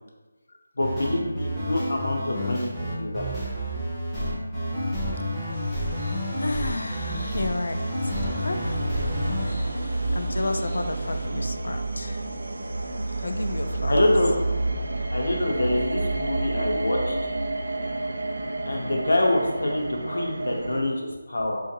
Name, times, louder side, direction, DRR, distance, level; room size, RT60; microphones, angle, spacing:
voice 1, 0.8-3.2 13.9-14.3 15.1-17.2 18.6-21.6, left 1 dB, 80° left, 0 dB, 0.7 m, -25 dB
sound 1, 0.8-9.4, equal, ahead, 0.5 m, -29 dB
sound 2, 5.5-11.3, equal, 45° left, 1.1 m, -44 dB
voice 2, 6.4-12.3 13.2-14.1, left 2 dB, 65° left, 6 dB, 0.3 m, -33 dB
sound 3, 8.0-20.8, right 2 dB, 60° right, 0.3 m, -29 dB
3.8 x 2.4 x 2.7 m, 1.2 s
figure-of-eight pair, 180°, 0 cm